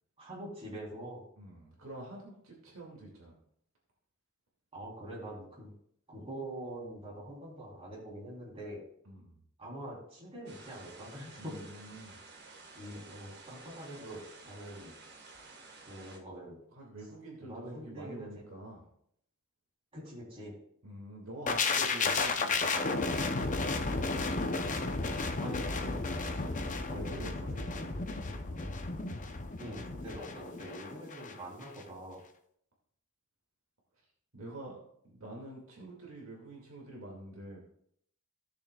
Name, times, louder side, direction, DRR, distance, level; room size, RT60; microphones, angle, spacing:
voice 1, 0.2-1.2 4.7-5.7 6.1-8.8 9.6-11.5 12.7-14.9 15.9-16.6 17.4-18.4 19.9-20.5 25.4-26.5 26.9-27.6 29.6-32.2, right 1 dB, 25° right, -5 dB, 3.3 m, -44 dB
voice 2, 1.4-3.3 9.1-9.3 11.4-12.2 16.7-18.9 20.8-23.1 26.9-28.8 34.3-37.6, right 1 dB, 65° right, -2 dB, 2.2 m, -47 dB
sound 1, 10.5-16.2, right 3 dB, 50° right, 1.6 m, -52 dB
sound 2, 21.5-31.3 31.6-31.8, left 3 dB, 35° left, 0.7 m, -33 dB
16.0 x 6.9 x 2.3 m, 0.69 s
head